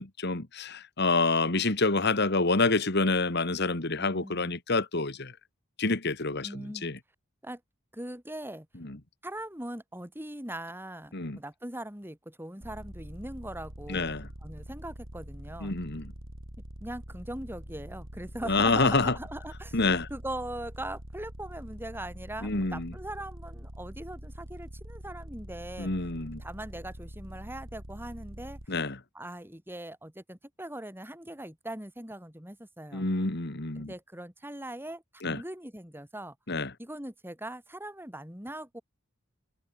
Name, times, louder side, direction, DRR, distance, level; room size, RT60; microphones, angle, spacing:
voice 1, 0.0-5.3 5.8-7.0 11.1-11.4 13.9-14.3 15.6-16.1 18.5-19.1 19.7-20.1 22.4-22.9 25.8-26.4 28.7-29.0 32.9-33.9 35.2-35.4 36.5-36.7, left 3 dB, 55° left, 2.2 m, -27 dB
voice 2, 4.0-4.6 6.4-6.9 7.4-7.6 7.9-8.7 9.2-15.7 16.8-19.8 20.1-25.9 26.4-28.6 29.1-33.0 33.7-36.4 36.8-38.8, right 1 dB, 10° right, 7.7 m, -41 dB
sound 1, 12.6-28.7, equal, 70° right, 5.7 m, -44 dB
head